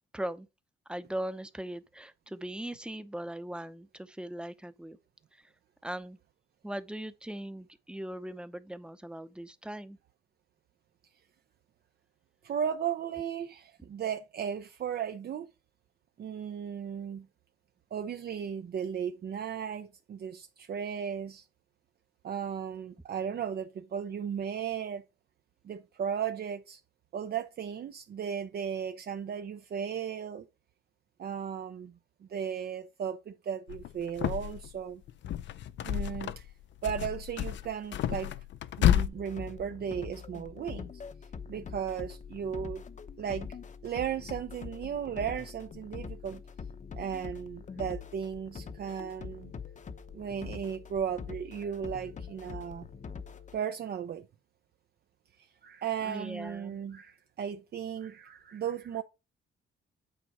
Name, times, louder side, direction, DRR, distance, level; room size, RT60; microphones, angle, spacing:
voice 1, 0.1-0.5 0.9-5.0 5.3-5.5 5.8-6.2 6.6-10.0 56.0-56.8, right 1 dB, 5° right, 0.8 m, -39 dB
voice 2, 12.4-15.5 16.2-17.3 17.9-21.5 22.2-25.0 25.6-26.8 27.1-30.5 31.2-31.9 32.2-35.0 35.8-36.5 36.8-38.3 38.8-40.9 41.5-42.8 43.2-43.5 43.8-46.4 46.9-49.5 50.1-52.9 53.5-54.2 55.6-59.0, right 8 dB, 55° right, 0.7 m, -35 dB
sound 1, 33.7-34.7 35.1-36.5 36.8-39.1, left 11 dB, 65° left, 0.6 m, -30 dB
sound 2, 39.1-53.6, left 6 dB, 40° left, 0.8 m, -44 dB
8.8 x 4.0 x 4.9 m
cardioid pair, 90°, 20 cm